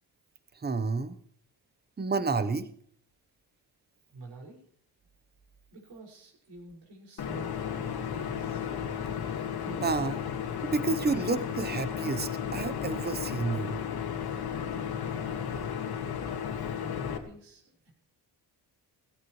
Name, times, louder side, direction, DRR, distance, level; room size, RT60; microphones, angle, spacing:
voice 1, 0.6-1.2 2.0-2.7 9.7-10.2 10.7-13.8, right 4 dB, 25° right, 12 dB, 1.0 m, -30 dB
voice 2, 4.1-4.7 5.7-8.7 15.5-16.1 16.8-17.9, right 2 dB, 70° right, 0 dB, 5.8 m, -49 dB
sound 1, 7.2-17.2, left 8 dB, 60° left, 1.9 m, -34 dB
17.5 x 16.0 x 3.2 m, 0.62 s
cardioid pair, 110°, 42 cm